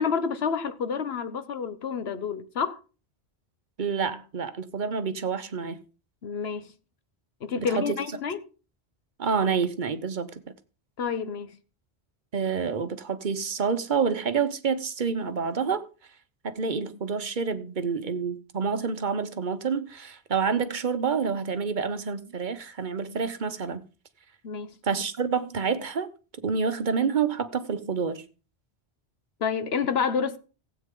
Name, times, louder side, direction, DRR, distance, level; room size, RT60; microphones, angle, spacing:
voice 1, 0.0-2.8 6.2-6.7 7.4-8.4 11.0-11.6 24.4-24.7 29.4-30.4, left 6 dB, 70° left, 1.2 m, -29 dB
voice 2, 3.8-5.8 7.6-8.0 9.2-10.3 12.3-15.8 16.4-23.8 24.8-26.1 26.4-28.2, right 6 dB, 50° right, 1.0 m, -28 dB
16.0 x 8.4 x 3.7 m
omnidirectional pair, 1.1 m